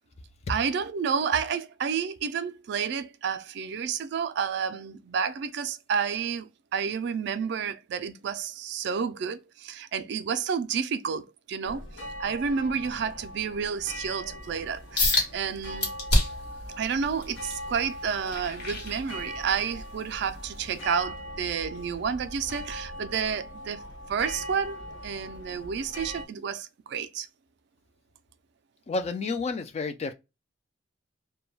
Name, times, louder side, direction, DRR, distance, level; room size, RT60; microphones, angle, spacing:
voice 1, 0.5-11.8 12.2-15.9 16.8-23.8 24.1-24.8 25.0-27.3, right 6 dB, 65° right, 0.3 m, -30 dB
sound 1, 11.6-26.2, equal, 80° left, 0.6 m, -40 dB
sound 2, 15.0-15.3 15.8-16.5 17.0-19.6 20.0-20.3 20.8-20.9, left 2 dB, 60° left, 1.1 m, -27 dB
voice 2, 28.9-30.1, left 3 dB, 35° left, 0.3 m, -30 dB
2.2 x 2.2 x 3.1 m
head